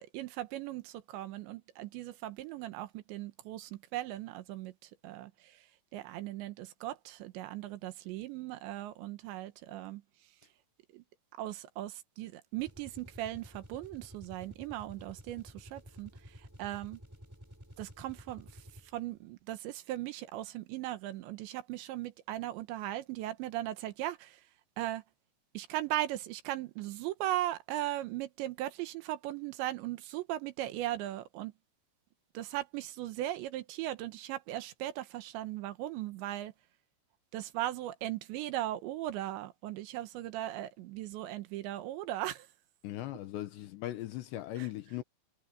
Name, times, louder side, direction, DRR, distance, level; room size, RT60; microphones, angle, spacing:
voice 1, 0.1-5.7 5.9-10.0 10.9-11.0 11.4-17.0 17.8-18.6 18.9-24.4 24.8-25.0 25.5-31.5 32.3-36.5 37.3-42.5 44.6-44.7, right 14 dB, 70° right, 3.1 m, -38 dB
sound 1, 12.6-19.1, equal, 5° right, 4.0 m, -52 dB
voice 2, 42.8-45.0, left 14 dB, 75° left, 2.8 m, -39 dB
omnidirectional pair, 5.9 m